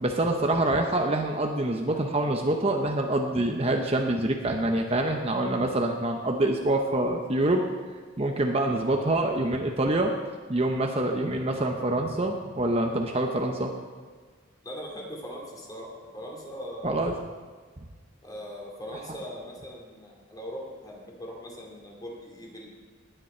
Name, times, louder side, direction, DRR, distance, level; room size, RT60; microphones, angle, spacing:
voice 1, 0.0-7.6 8.2-10.1 10.5-13.7 16.8-17.1, right 1 dB, 30° right, 3 dB, 0.8 m, -26 dB
voice 2, 14.6-17.1 18.2-22.7, equal, 20° left, -1 dB, 2.6 m, -40 dB
19.0 x 9.1 x 4.5 m, 1.5 s
head